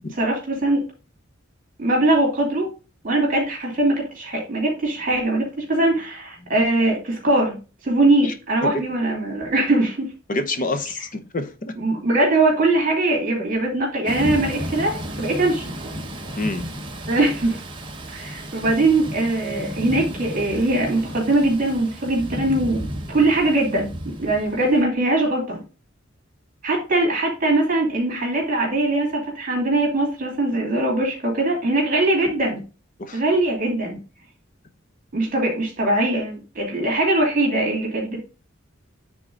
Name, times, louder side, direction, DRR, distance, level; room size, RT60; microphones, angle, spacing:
voice 1, 0.2-0.8 1.8-2.7 3.0-7.6 7.8-10.0 11.8-15.7 17.1-17.6 18.1-25.6 26.6-32.6 33.1-34.0 35.1-38.2, right 2 dB, 45° right, 2.7 m, -21 dB
voice 2, 10.3-11.7 16.4-16.7 33.0-33.2, left 2 dB, 45° left, 0.9 m, -27 dB
Thunder / Rain, 14.1-24.8, equal, 25° right, 1.2 m, -33 dB
9.1 x 3.9 x 3.8 m
head